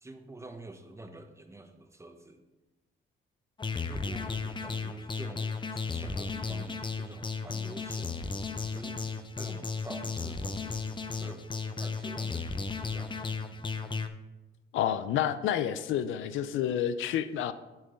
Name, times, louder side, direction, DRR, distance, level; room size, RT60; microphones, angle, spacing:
voice 1, 0.0-2.4 3.8-8.5 8.7-10.8 11.2-11.4 11.8-13.1 13.6-13.8, right 2 dB, 15° right, 6 dB, 0.9 m, -47 dB
sound 1, 3.6-14.1, left 4 dB, 25° left, 0.6 m, -35 dB
voice 2, 14.7-17.5, left 10 dB, 80° left, 13 dB, 0.5 m, -29 dB
7.7 x 4.4 x 5.6 m, 1.1 s
cardioid pair, 90°, 20 cm